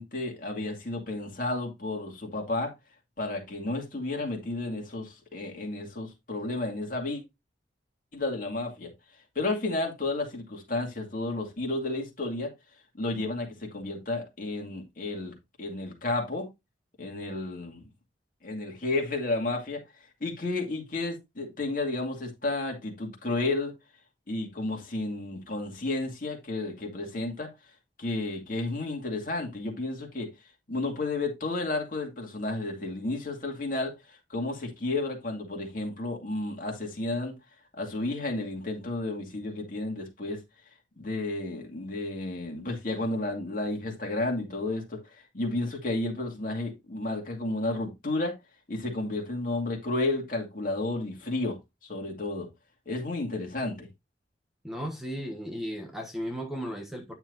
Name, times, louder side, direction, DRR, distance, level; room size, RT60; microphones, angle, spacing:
voice 1, 0.0-2.7 3.2-7.2 8.1-8.9 9.4-12.5 13.0-16.5 17.0-17.9 18.4-19.8 20.2-23.7 24.3-27.5 28.0-30.3 30.7-37.3 37.8-40.4 41.0-48.3 48.7-51.6 51.8-52.5 52.9-53.9, left 2 dB, 50° left, 2.3 m, -32 dB
voice 2, 54.6-57.1, equal, ahead, 1.3 m, -35 dB
9.6 x 6.1 x 2.6 m
head